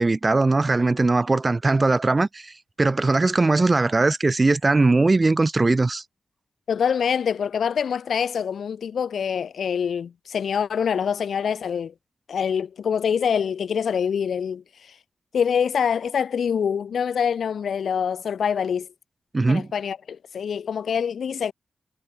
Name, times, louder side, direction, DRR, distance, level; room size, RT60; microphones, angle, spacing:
voice 1, 0.0-2.5 2.8-6.0 19.3-19.7, right 3 dB, 30° right, 1.5 m, -20 dB
voice 2, 6.7-11.9 12.3-14.6 15.3-18.9 19.5-21.5, left 7 dB, 85° left, 2.5 m, -25 dB
wide cardioid pair, 110°, 0 cm